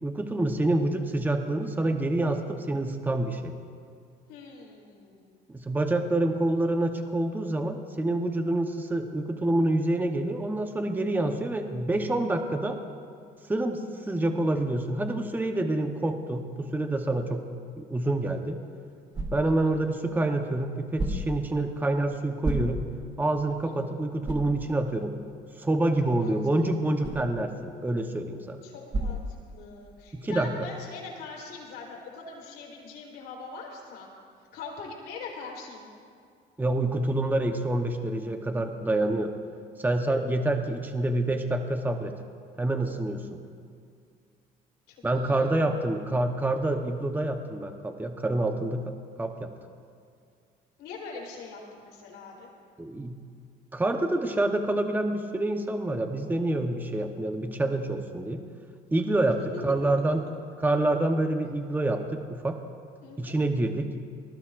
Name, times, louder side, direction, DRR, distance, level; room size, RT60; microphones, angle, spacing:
voice 1, 0.0-3.5 5.5-12.8 13.5-17.5 17.8-18.6 19.3-22.8 23.2-25.1 25.6-28.6 30.1-30.7 36.6-39.3 39.8-42.2 42.6-43.4 45.0-49.5 52.8-53.2 53.7-58.4 58.9-60.2 60.6-62.6 63.2-63.9, right 2 dB, 10° right, 5 dB, 0.9 m, -27 dB
voice 2, 4.3-5.3 19.4-19.6 23.7-23.9 26.2-26.7 28.6-34.1 34.5-35.9 44.9-45.8 50.8-52.5 63.0-63.4, left 4 dB, 90° left, -1 dB, 3.9 m, -43 dB
sound 1, 18.3-30.0, right 1 dB, 30° right, 2.7 m, -37 dB
25.0 x 19.0 x 2.5 m, 2.2 s
cardioid pair, 110°, 17 cm